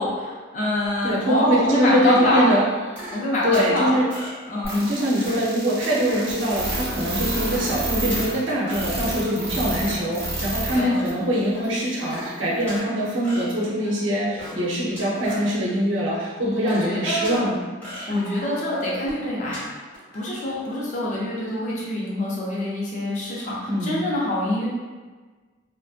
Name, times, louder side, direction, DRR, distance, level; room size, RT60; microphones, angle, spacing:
voice 1, 0.0-2.5 3.1-3.9 4.5-4.8 10.7-10.9 16.6-17.4 18.1-19.6 20.1-24.7, left 1 dB, 40° left, -5 dB, 0.5 m, -25 dB
voice 2, 1.0-2.6 3.4-4.1 4.7-17.6 18.1-18.4 23.7-24.0, equal, 80° right, -6 dB, 0.7 m, -23 dB
sound 1, 2.7-3.7 4.1-5.5 5.8-6.5 7.0-7.1 7.3-8.2 8.7-10.1 10.4-11.0 11.6-12.9 13.2-14.7 14.9-15.6 16.1-17.4 17.8-19.6 19.9-20.2, equal, 10° left, 1.0 m, -38 dB
sound 2, 4.6-10.8 11.0-11.1 11.6-11.7, right 2 dB, 35° right, 0.9 m, -29 dB
2.6 x 2.1 x 2.4 m, 1.4 s
head